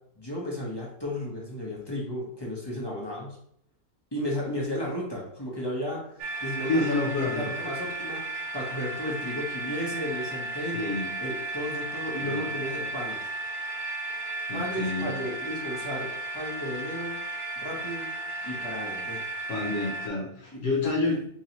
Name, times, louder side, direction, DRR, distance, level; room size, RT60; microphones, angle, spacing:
voice 1, 0.1-3.4 4.1-10.9 11.2-13.3 14.5-16.1 16.3-17.2 17.6-18.1 18.4-19.3 20.5-21.0, left 1 dB, 20° left, -4 dB, 0.7 m, -34 dB
sound 1, 6.2-20.1, right 2 dB, 70° right, 1.2 m, -34 dB
voice 2, 6.7-7.5 10.7-11.2 12.2-12.5 14.5-15.1 19.5-21.3, left 3 dB, 70° left, -2 dB, 1.2 m, -28 dB
3.9 x 3.0 x 2.9 m, 0.68 s
omnidirectional pair, 1.6 m